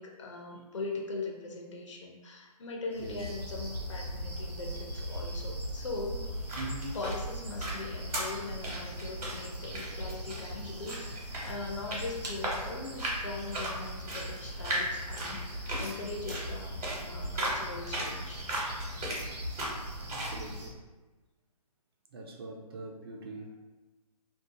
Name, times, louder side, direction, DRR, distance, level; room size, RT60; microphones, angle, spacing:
voice 1, 0.0-6.2 6.9-18.5, left 3 dB, 50° left, 0 dB, 0.5 m, -40 dB
sound 1, 2.9-20.7, equal, 90° right, 0.8 m, -40 dB
voice 2, 5.1-5.4 6.6-7.0 20.1-20.8 22.1-23.7, right 2 dB, 40° right, 0 dB, 0.4 m, -43 dB
sound 2, 6.2-20.4, right 1 dB, 65° right, 1.0 m, -38 dB
2.7 x 2.1 x 2.7 m, 1.2 s
figure-of-eight pair, 135°, 21 cm